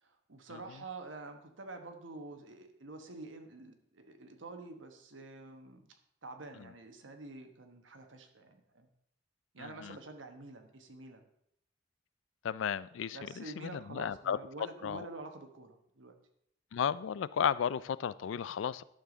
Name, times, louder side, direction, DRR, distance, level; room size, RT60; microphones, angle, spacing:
voice 1, 0.0-8.9 9.5-11.2 13.1-16.2, right 3 dB, 80° right, 6 dB, 1.2 m, -48 dB
voice 2, 9.6-10.0 12.4-14.4 14.8-15.1 16.7-18.8, left 8 dB, 75° left, 18 dB, 0.3 m, -34 dB
11.5 x 6.9 x 3.9 m, 0.74 s
head